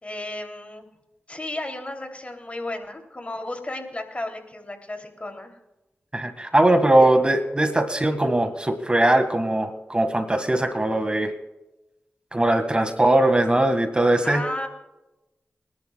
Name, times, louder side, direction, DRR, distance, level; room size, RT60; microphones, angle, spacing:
voice 1, 0.0-0.9 1.3-5.5 7.0-7.1 14.2-14.7, left 1 dB, 35° left, 4 dB, 2.9 m, -33 dB
voice 2, 6.1-11.3 12.3-14.4, right 1 dB, 25° right, 7 dB, 1.8 m, -20 dB
29.5 x 11.0 x 2.3 m, 0.98 s
cardioid pair, 40°, 4 cm